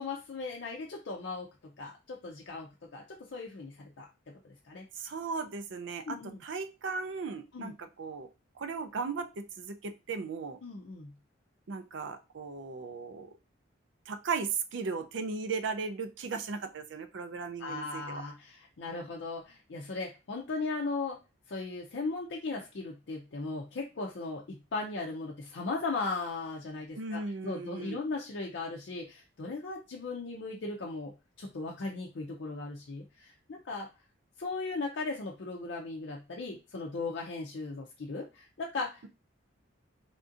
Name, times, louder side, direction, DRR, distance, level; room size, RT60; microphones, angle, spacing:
voice 1, 0.0-1.5 1.8-4.1 4.6-4.9 6.0-6.4 7.5-7.7 10.6-11.1 17.6-21.2 21.5-31.1 31.4-33.9 34.4-39.0, left 3 dB, 65° left, -1 dB, 0.5 m, -37 dB
voice 2, 4.9-8.3 8.6-10.6 11.7-13.3 14.1-18.2 26.9-28.0, right 4 dB, 70° right, 8 dB, 0.4 m, -36 dB
3.5 x 2.6 x 2.5 m, 0.28 s
head